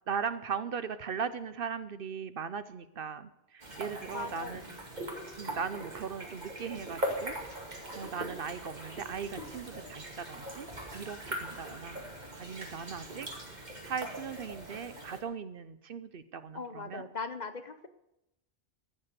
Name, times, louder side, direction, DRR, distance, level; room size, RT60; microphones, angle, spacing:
voice 1, 0.1-4.6 5.4-7.3 8.0-10.7 10.9-12.0 12.4-17.0, right 6 dB, 60° right, 13 dB, 0.9 m, -38 dB
sound 1, 3.6-15.2, right 1 dB, 40° right, 2.3 m, -41 dB
voice 2, 4.1-4.8 16.5-17.9, left 3 dB, 45° left, 10 dB, 1.0 m, -39 dB
14.5 x 8.7 x 6.8 m, 0.86 s
omnidirectional pair, 1.1 m